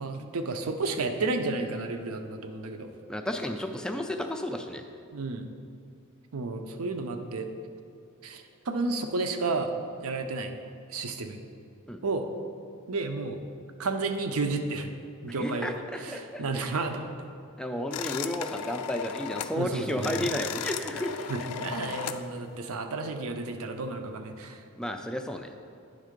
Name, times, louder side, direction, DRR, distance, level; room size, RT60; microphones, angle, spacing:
voice 1, 0.0-2.9 5.1-5.5 6.3-7.5 8.2-9.7 10.0-10.5 10.9-11.4 12.0-12.2 12.9-13.4 13.8-14.9 15.2-17.3 19.5-20.2 21.3-24.6, right 3 dB, 70° right, 6 dB, 0.6 m, -32 dB
voice 2, 3.1-4.8 11.9-12.0 15.3-16.7 17.6-21.5 24.8-25.5, left 1 dB, 5° left, 4 dB, 0.4 m, -32 dB
sound 1, 17.9-19.6 19.9-22.2, left 9 dB, 90° left, 0.4 m, -36 dB
10.0 x 3.7 x 5.1 m, 2.5 s
head